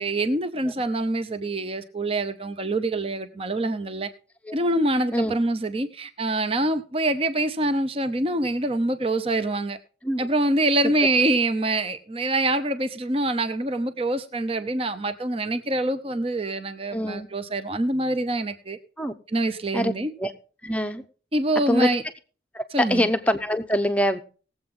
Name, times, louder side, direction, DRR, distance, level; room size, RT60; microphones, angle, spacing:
voice 1, 0.0-4.1 4.5-9.8 10.2-18.8 19.3-20.1 21.3-22.0 22.7-23.1, right 2 dB, 30° right, 0.8 m, -25 dB
voice 2, 16.9-17.3 19.0-19.1 19.7-19.9 20.2-20.3 20.6-21.0 21.7-21.9 22.5-24.2, equal, 10° left, 0.7 m, -24 dB
19.5 x 7.9 x 3.7 m
head